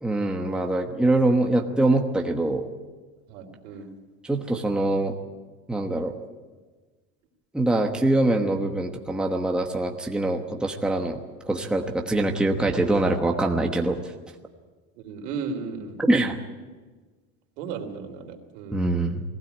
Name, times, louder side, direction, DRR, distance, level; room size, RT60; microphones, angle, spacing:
voice 1, 0.0-2.7 4.2-5.2 5.7-6.1 7.5-11.2 11.4-14.0 16.1-16.4 18.7-19.2, right 2 dB, 5° right, 2 dB, 1.1 m, -23 dB
voice 2, 3.3-3.9 15.0-16.0 17.6-18.9, right 5 dB, 85° right, 3 dB, 3.6 m, -35 dB
21.0 x 16.0 x 9.0 m, 1.4 s
cardioid pair, 165°, 35 cm